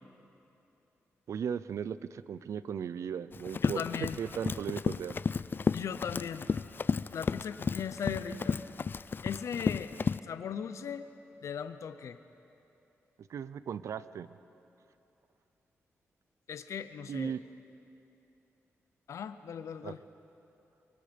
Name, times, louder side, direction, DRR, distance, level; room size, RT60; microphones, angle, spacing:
voice 1, 1.3-3.8 4.2-5.1 13.3-14.3 17.1-17.4 19.8-20.0, right 8 dB, 75° right, 15 dB, 0.6 m, -36 dB
Run, 3.3-10.2, left 5 dB, 45° left, 0.4 m, -33 dB
voice 2, 3.6-4.2 5.7-6.6 7.1-8.6 9.2-9.9 10.2-11.1 11.4-12.2 16.5-17.4 19.1-20.0, left 7 dB, 75° left, 11 dB, 0.7 m, -38 dB
24.0 x 23.0 x 5.2 m, 2.9 s
cardioid pair, 75°, 5 cm